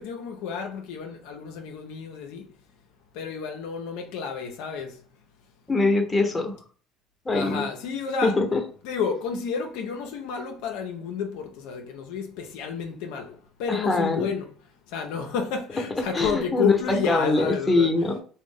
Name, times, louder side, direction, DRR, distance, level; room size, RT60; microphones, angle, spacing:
voice 1, 0.0-2.5 3.1-5.0 7.3-8.4 8.8-14.5 14.9-17.9, left 6 dB, 75° left, 0.4 m, -31 dB
voice 2, 5.7-6.6 7.3-7.7 8.2-8.6 13.7-14.3 16.0-18.2, left 2 dB, 20° left, 0.7 m, -23 dB
2.5 x 2.1 x 3.5 m
hypercardioid pair, 70°, 0 cm